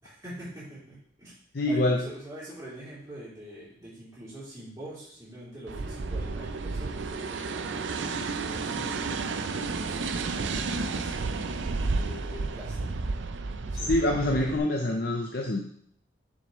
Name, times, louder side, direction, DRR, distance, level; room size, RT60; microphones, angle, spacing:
voice 1, 0.0-1.3 1.6-9.2 9.7-10.5 10.9-13.1 13.6-14.2, right 1 dB, 15° right, -11 dB, 3.4 m, -45 dB
voice 2, 1.5-2.0 13.8-15.6, left 1 dB, 50° left, 0 dB, 0.6 m, -25 dB
sound 1, 5.7-14.6, right 3 dB, 65° right, 0.5 m, -32 dB
7.3 x 6.4 x 3.1 m, 0.63 s
head